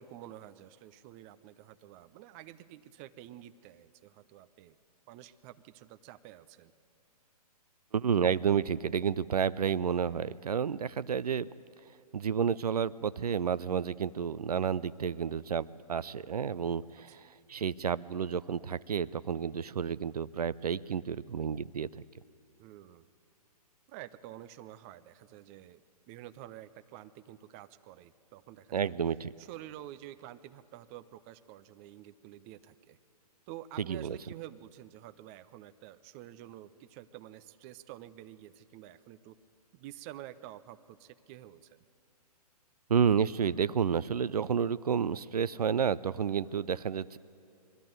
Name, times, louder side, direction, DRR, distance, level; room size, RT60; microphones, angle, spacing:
voice 1, 0.0-4.8 5.1-6.7 17.1-17.2 22.6-23.1 23.9-29.0 29.4-33.0 33.5-39.4 39.7-41.8, right 13 dB, 20° right, 13 dB, 0.4 m, -49 dB
voice 2, 7.9-11.5 12.1-17.1 17.5-21.9 28.7-29.3 33.9-34.2 42.9-47.2, right 7 dB, 70° right, 18 dB, 0.5 m, -30 dB
21.5 x 13.0 x 9.3 m, 2.8 s
figure-of-eight pair, 125°, 20 cm